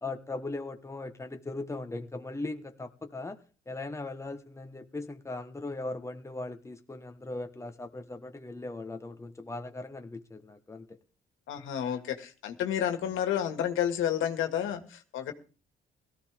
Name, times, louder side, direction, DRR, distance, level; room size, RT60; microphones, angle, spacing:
voice 1, 0.0-3.4 3.7-11.0, left 2 dB, 15° left, 6 dB, 1.4 m, -39 dB
voice 2, 11.5-15.3, left 10 dB, 85° left, 6 dB, 2.1 m, -30 dB
17.5 x 14.5 x 3.6 m, 0.36 s
cardioid pair, 90°, 20 cm